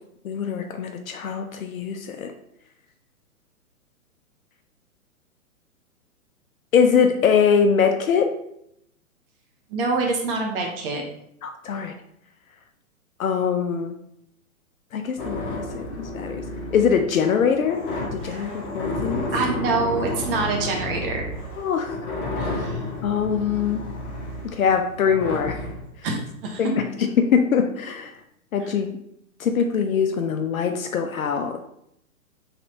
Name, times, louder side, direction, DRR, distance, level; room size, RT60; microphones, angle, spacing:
voice 1, 0.2-2.3 6.7-8.3 11.4-12.0 13.2-14.0 14.9-17.8 18.1-19.2 21.6-22.0 23.0-23.8 24.4-25.7 26.6-28.1 28.5-28.9 29.4-31.6, left 6 dB, 70° left, 6 dB, 0.5 m, -23 dB
voice 2, 9.7-11.0 18.2-18.5 19.3-21.2 22.4-22.8 26.0-26.6, right 4 dB, 40° right, 1 dB, 0.9 m, -26 dB
sound 1, 15.2-25.9, left 2 dB, 35° left, 1.1 m, -31 dB
4.1 x 3.5 x 2.8 m, 0.76 s
figure-of-eight pair, 115°, 43 cm